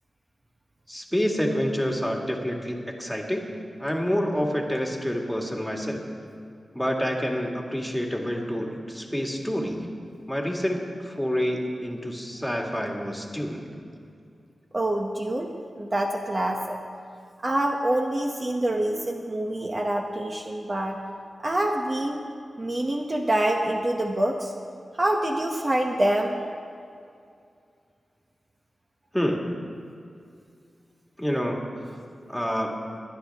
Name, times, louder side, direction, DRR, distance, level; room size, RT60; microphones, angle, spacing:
voice 1, 0.9-3.5 3.8-6.0 6.7-9.9 10.3-13.6 29.1-29.5 31.2-31.7 32.3-32.8, equal, 5° left, 1 dB, 1.9 m, -28 dB
voice 2, 14.7-15.5 15.8-16.8 17.4-21.0 21.4-22.2 22.6-24.5 25.0-26.4, right 1 dB, 35° right, 1 dB, 1.0 m, -26 dB
22.5 x 10.0 x 3.5 m, 2.4 s
cardioid pair, 70°, 0 cm